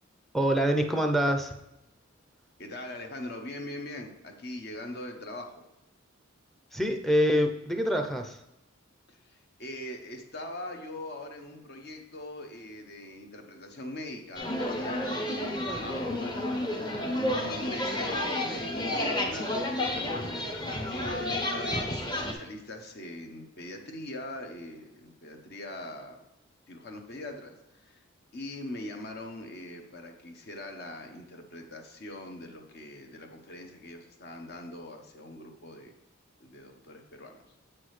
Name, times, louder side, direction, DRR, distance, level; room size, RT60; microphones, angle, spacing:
voice 1, 0.3-1.6 6.7-8.4, equal, ahead, 4 dB, 0.5 m, -25 dB
voice 2, 2.6-5.6 9.1-16.8 17.1-20.6 20.9-26.2 26.7-27.6 27.8-28.0 28.3-35.9 36.4-37.4, left 1 dB, 55° left, 4 dB, 0.9 m, -42 dB
sound 1, 14.4-22.3, left 1 dB, 20° left, 0.8 m, -31 dB
7.6 x 6.1 x 3.2 m, 0.91 s
head